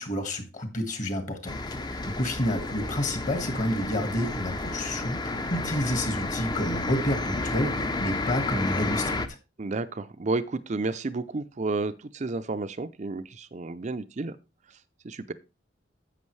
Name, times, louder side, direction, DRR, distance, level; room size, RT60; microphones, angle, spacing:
voice 1, 0.0-1.6 1.9-9.2, left 1 dB, 40° left, 1.7 m, -29 dB
sound 1, 1.5-9.3, left 2 dB, 20° left, 0.6 m, -31 dB
voice 2, 9.6-14.4 15.0-15.3, right 3 dB, 40° right, 0.5 m, -31 dB
11.0 x 7.7 x 3.2 m
head